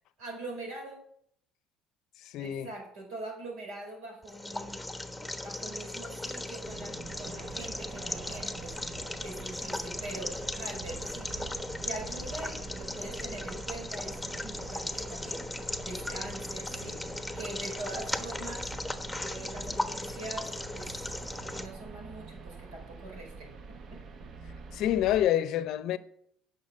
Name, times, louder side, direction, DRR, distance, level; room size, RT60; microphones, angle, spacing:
voice 1, 0.2-1.0 2.4-4.9 5.4-8.8 9.2-11.5 11.8-17.1 17.3-18.7 19.2-20.9 21.5-24.3, right 2 dB, 75° right, 4.7 m, -43 dB
voice 2, 2.2-2.7 24.7-26.0, left 12 dB, 65° left, 0.6 m, -27 dB
sound 1, 4.2-21.7, left 1 dB, 5° left, 1.2 m, -37 dB
sound 2, 6.6-25.3, right 4 dB, 50° right, 1.1 m, -46 dB
10.5 x 6.0 x 6.6 m
hypercardioid pair, 70°, 0 cm